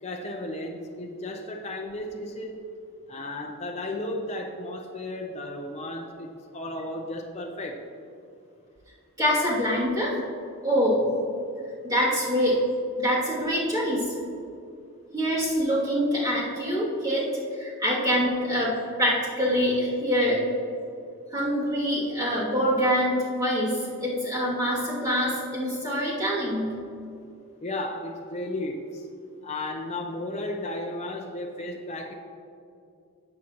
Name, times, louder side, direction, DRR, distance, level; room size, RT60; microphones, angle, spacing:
voice 1, 0.0-2.6 3.1-6.3 6.5-7.8 27.6-29.1 29.4-32.1, left 1 dB, 30° left, 1 dB, 0.6 m, -34 dB
voice 2, 9.2-10.2 10.6-11.1 11.8-12.6 13.0-14.1 15.1-17.3 17.6-20.4 21.3-26.7, equal, 15° right, -8 dB, 2.6 m, -25 dB
14.0 x 8.4 x 3.0 m, 2.5 s
head